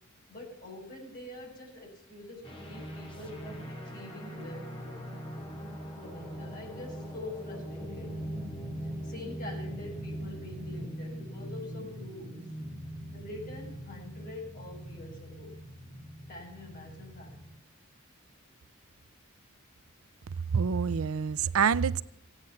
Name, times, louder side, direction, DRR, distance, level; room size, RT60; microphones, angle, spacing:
voice 1, 0.3-5.0 6.0-8.1 8.8-12.6 13.1-15.6 16.3-17.4, left 2 dB, 40° left, 6.5 m, -45 dB
sound 1, 2.4-17.5, equal, 25° left, 3.2 m, -41 dB
voice 2, 20.5-22.0, right 6 dB, 75° right, 0.5 m, -26 dB
16.5 x 9.9 x 8.3 m
head